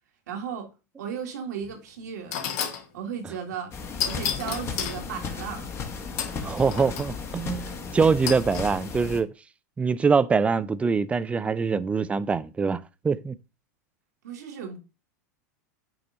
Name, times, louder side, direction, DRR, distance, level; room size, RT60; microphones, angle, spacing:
voice 1, 0.3-0.7 1.0-2.5 2.9-3.7 4.0-5.7 14.2-14.8, right 7 dB, 75° right, 1.7 m, -35 dB
sound 1, 1.6-1.7 2.3-2.9 4.0-5.0 6.2-7.1 8.3-8.7, left 8 dB, 60° left, 1.3 m, -31 dB
sound 2, 3.7-9.2, left 5 dB, 25° left, 1.1 m, -35 dB
voice 2, 6.4-9.3 9.8-13.4, right 5 dB, 15° right, 0.4 m, -24 dB
8.5 x 3.0 x 3.8 m
hypercardioid pair, 110°, 9 cm